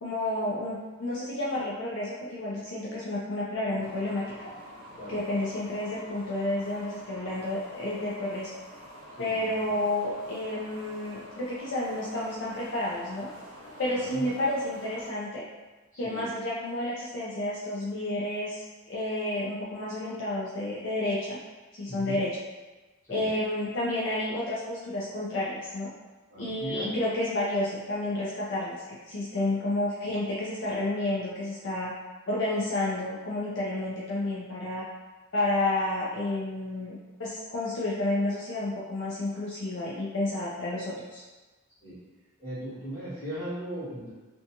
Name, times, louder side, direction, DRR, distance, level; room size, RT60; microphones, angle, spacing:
voice 1, 0.0-4.2 5.1-8.5 9.2-13.3 13.8-15.4 16.0-21.4 21.8-22.4 23.1-25.9 26.4-31.9 32.3-34.8 35.3-41.2, left 1 dB, 55° left, -5 dB, 0.4 m, -30 dB
sound 1, 3.8-15.1, equal, 65° right, 0.5 m, -47 dB
voice 2, 9.2-9.7 13.9-14.3 15.9-16.2 21.9-22.2 23.1-23.3 26.3-26.9 29.3-29.4 41.8-42.0 42.4-44.1, right 1 dB, 15° left, -11 dB, 1.0 m, -38 dB
2.6 x 2.2 x 2.8 m, 1.2 s
head